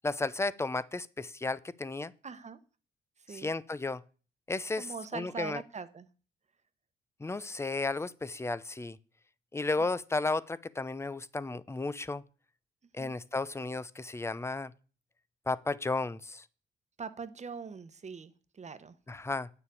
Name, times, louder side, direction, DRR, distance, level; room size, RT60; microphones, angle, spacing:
voice 1, 0.0-2.1 3.3-4.0 4.5-5.6 7.2-9.0 9.5-12.2 12.9-14.7 15.5-16.5 19.1-19.5, left 3 dB, 15° left, 0.6 m, -33 dB
voice 2, 2.2-2.6 3.2-3.5 4.8-6.1 13.0-13.2 17.0-19.0, right 5 dB, 35° right, 1.2 m, -42 dB
8.9 x 7.0 x 8.5 m
cardioid pair, 90°, 20 cm